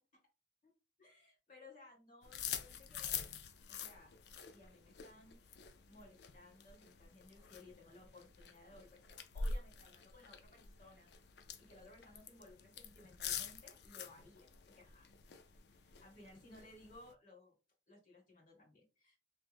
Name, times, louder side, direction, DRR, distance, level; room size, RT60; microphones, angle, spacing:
voice 1, 1.0-3.1 3.7-5.4 5.9-11.1 11.6-15.1 15.7-17.5 17.9-19.2, left 2 dB, 50° left, -2 dB, 1.5 m, -60 dB
sound 1, 2.2-17.1, left 5 dB, 75° left, 0.4 m, -47 dB
3.3 x 2.0 x 3.4 m, 0.32 s
head